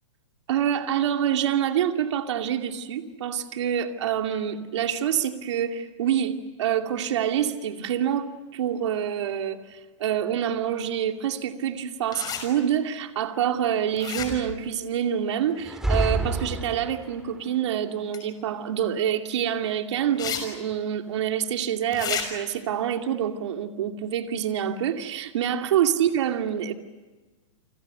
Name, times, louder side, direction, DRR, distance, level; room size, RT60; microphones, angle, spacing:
voice 1, 0.5-26.7, right 9 dB, 65° right, 5 dB, 2.5 m, -26 dB
sound 1, 12.1-12.4 14.0-14.6 18.1-18.2 20.2-20.4 20.7-20.8 21.9-22.2, left 8 dB, 25° left, 6.1 m, -30 dB
sound 2, 15.6-17.3, right 1 dB, 5° right, 3.0 m, -27 dB
29.5 x 26.0 x 6.8 m, 1.2 s
hypercardioid pair, 125°, 16 cm